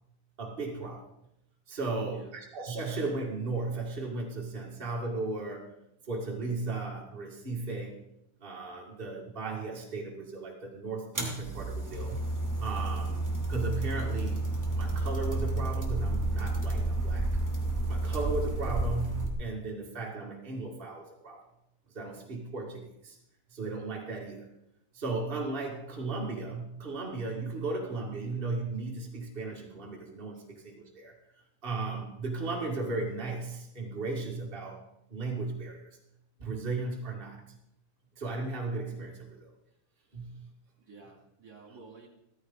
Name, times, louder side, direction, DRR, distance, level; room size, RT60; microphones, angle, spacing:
voice 1, 0.4-1.1 1.7-5.7 6.1-8.0 8.4-12.3 12.5-14.4 14.7-17.3 17.9-21.5 21.9-23.2 23.5-24.5 24.9-31.1 31.6-34.8 35.1-35.9 36.4-37.6 38.2-39.5 40.1-40.5, right 3 dB, 45° right, -1 dB, 0.6 m, -36 dB
voice 2, 1.8-2.3 30.3-30.4 40.8-42.1, right 3 dB, 25° right, 0 dB, 2.7 m, -50 dB
sound 1, 11.1-19.3, right 2 dB, 10° right, 1.3 m, -31 dB
15.5 x 14.0 x 3.9 m, 0.81 s
omnidirectional pair, 4.6 m